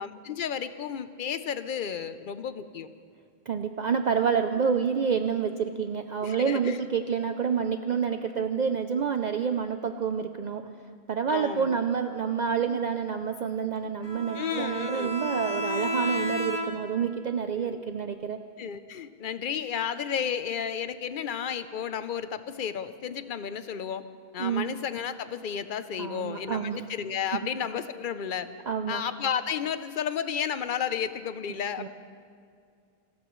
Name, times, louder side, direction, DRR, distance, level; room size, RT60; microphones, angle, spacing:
voice 1, 0.0-2.9 6.2-6.8 11.3-11.8 12.6-12.8 14.3-15.1 17.6-17.8 18.6-24.0 24.3-28.5 28.9-31.9, left 8 dB, 55° left, 12 dB, 0.8 m, -32 dB
voice 2, 3.5-10.6 11.1-18.4 24.4-24.7 26.0-26.8 28.7-29.0 31.8-31.9, right 6 dB, 50° right, 7 dB, 0.6 m, -28 dB
Bowed string instrument, 14.0-17.0, equal, 25° left, 1.4 m, -32 dB
29.5 x 13.5 x 3.1 m, 2.3 s
omnidirectional pair, 1.1 m